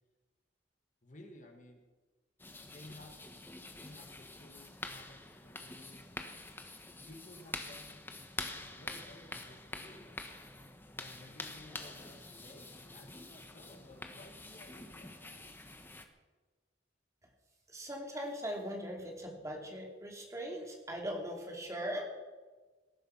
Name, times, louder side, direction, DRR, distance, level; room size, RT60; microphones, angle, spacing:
voice 1, 1.0-1.8 2.5-3.4 3.7-6.1 6.9-7.9 8.2-10.4 11.0-15.6, left 1 dB, 45° left, 3 dB, 2.1 m, -56 dB
sound 1, 2.4-16.1, left 2 dB, 10° left, 1.2 m, -47 dB
voice 2, 17.7-22.0, equal, 15° right, 0 dB, 2.9 m, -40 dB
19.0 x 11.5 x 6.0 m, 1.3 s
head